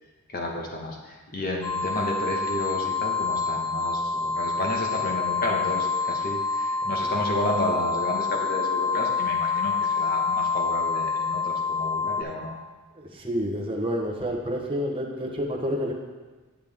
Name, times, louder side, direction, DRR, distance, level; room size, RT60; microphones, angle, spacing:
voice 1, 0.3-12.5, left 1 dB, 40° left, -1 dB, 1.5 m, -31 dB
sound 1, 1.6-12.2, left 4 dB, 20° left, 0.9 m, -27 dB
voice 2, 12.9-15.9, equal, 25° right, -1 dB, 1.1 m, -29 dB
10.0 x 7.7 x 3.6 m, 1.3 s
head